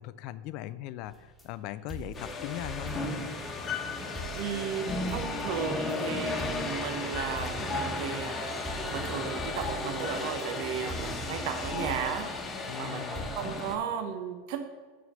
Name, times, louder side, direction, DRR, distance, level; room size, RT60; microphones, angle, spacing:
voice 1, 0.0-3.0 12.7-13.3, left 14 dB, 55° left, 15 dB, 0.4 m, -39 dB
sound 1, 1.1-1.5 1.9-3.3 3.6-3.7 4.2-6.0 6.4-7.8 8.7-10.5 10.9-12.3 13.2-13.7, right 1 dB, 10° left, 1.5 m, -43 dB
sound 2, 2.1-13.8, left 3 dB, 25° left, 1.1 m, -34 dB
voice 2, 4.3-8.3 8.9-12.3 12.7-14.6, right 8 dB, 60° right, 7 dB, 0.8 m, -35 dB
sound 3, 4.6-10.5, right 2 dB, 30° right, 2.3 m, -48 dB
6.9 x 4.9 x 6.4 m, 1.5 s
hypercardioid pair, 95°, 0 cm